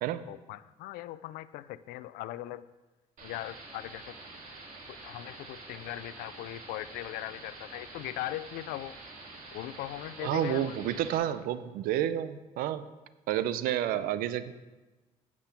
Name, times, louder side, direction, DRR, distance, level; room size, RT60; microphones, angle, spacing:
voice 1, 0.3-2.7 3.2-4.2 5.0-9.0 9.5-10.8, left 15 dB, 85° left, 17 dB, 0.4 m, -39 dB
sound 1, 3.2-11.2, right 3 dB, 60° right, 2.2 m, -47 dB
voice 2, 10.2-12.9 13.3-14.5, right 11 dB, 80° right, 14 dB, 0.5 m, -30 dB
8.4 x 6.0 x 5.8 m, 1.2 s
supercardioid pair, 75°, 15 cm